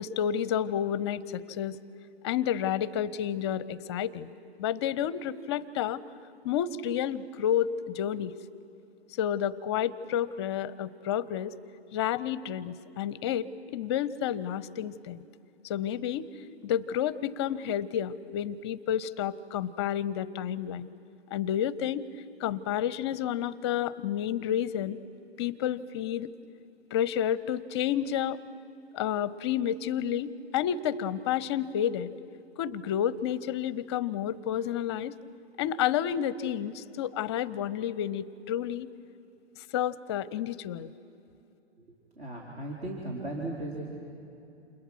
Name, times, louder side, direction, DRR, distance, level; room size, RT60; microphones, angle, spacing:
voice 1, 0.0-1.8 2.2-4.3 4.6-6.0 6.4-8.3 9.2-11.5 11.9-15.2 15.6-16.3 16.6-20.9 21.3-22.1 22.4-25.0 25.4-26.3 26.9-28.4 28.9-32.1 32.6-35.2 35.6-38.9 39.7-40.9, left 10 dB, 25° left, 19 dB, 0.5 m, -30 dB
voice 2, 42.2-43.8, right 1 dB, 70° right, -2 dB, 4.0 m, -36 dB
30.0 x 28.0 x 6.1 m, 2.7 s
figure-of-eight pair, 120°, 33 cm